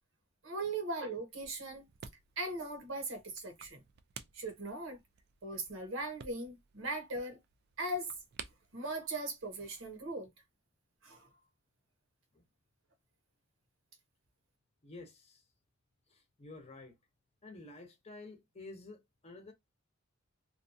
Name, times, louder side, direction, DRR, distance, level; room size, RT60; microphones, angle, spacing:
voice 1, 0.4-1.8 2.4-3.8 4.3-5.0 5.4-7.4 7.8-8.1 8.7-10.3 11.0-11.3, right 2 dB, 70° right, 0.9 m, -39 dB
makeup cap, 1.3-10.0, right 7 dB, 55° right, 0.4 m, -55 dB
voice 2, 14.8-15.4 16.1-17.0 17.4-19.5, left 2 dB, 30° left, 0.7 m, -51 dB
2.6 x 2.2 x 2.6 m
head